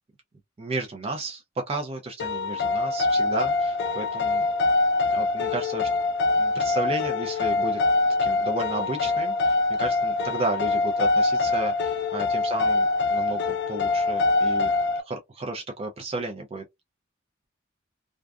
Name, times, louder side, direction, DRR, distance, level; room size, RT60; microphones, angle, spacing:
voice 1, 0.6-4.4 5.1-5.9 6.4-7.8 8.2-13.4 13.7-14.7 15.0-16.6, right 2 dB, 30° right, 0.4 m, -33 dB
sound 1, 2.2-15.0, left 3 dB, 60° left, 0.4 m, -24 dB
2.5 x 2.3 x 2.2 m
head